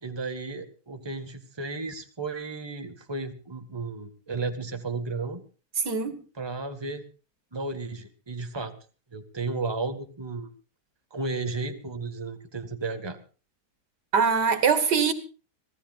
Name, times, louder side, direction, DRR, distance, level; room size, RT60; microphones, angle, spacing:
voice 1, 0.0-5.4 6.4-7.0 7.5-8.7 9.1-10.5 11.1-13.2, right 3 dB, 15° right, 1.8 m, -33 dB
voice 2, 5.8-6.2 14.1-15.1, right 6 dB, 85° right, 2.5 m, -22 dB
26.0 x 17.0 x 2.5 m
omnidirectional pair, 1.8 m